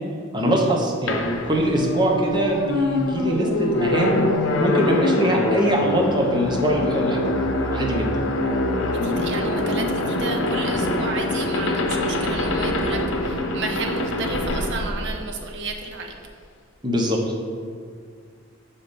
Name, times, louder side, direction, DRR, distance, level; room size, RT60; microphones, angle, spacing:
voice 1, 0.3-4.2 4.6-7.3 7.7-8.1 16.8-17.2, equal, 25° right, -1 dB, 0.8 m, -22 dB
sound 1, 1.1-15.8, left 1 dB, 70° left, 0.7 m, -24 dB
voice 2, 8.8-16.1, right 4 dB, 60° right, 3 dB, 0.7 m, -32 dB
5.8 x 4.2 x 5.1 m, 2.1 s
head